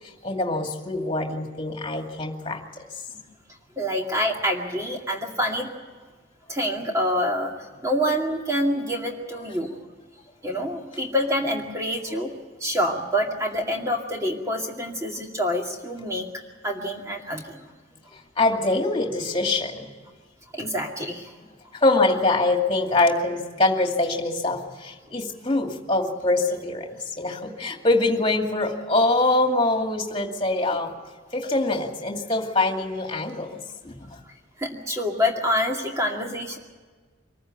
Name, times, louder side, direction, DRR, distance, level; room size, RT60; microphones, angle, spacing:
voice 1, 0.2-2.8 18.4-19.9 21.7-30.9 31.3-33.6 33.8-34.0, left 2 dB, 25° left, 3 dB, 2.4 m, -24 dB
voice 2, 3.8-5.7 6.5-7.5 7.8-9.7 10.4-12.3 12.6-16.3 16.6-17.7 20.5-21.3 34.6-36.6, equal, 15° right, 1 dB, 2.3 m, -26 dB
24.5 x 14.5 x 9.2 m, 1.4 s
head